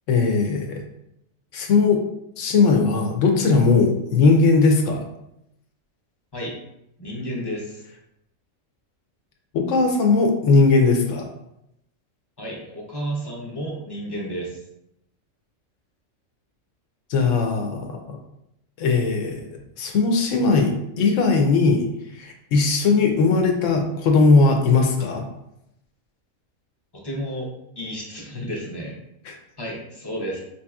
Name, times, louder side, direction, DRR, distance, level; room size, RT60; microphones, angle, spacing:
voice 1, 0.1-0.8 1.5-2.0 2.4-5.1 9.5-11.3 17.1-18.2 18.8-19.4 19.8-21.9 22.2-25.2 29.3-29.4, left 4 dB, 70° left, 3 dB, 0.9 m, -19 dB
voice 2, 7.0-7.8 12.4-14.6 27.0-27.5 27.8-29.0 29.6-30.4, equal, 25° left, -3 dB, 0.5 m, -31 dB
4.7 x 2.7 x 2.3 m, 0.82 s
omnidirectional pair, 1.4 m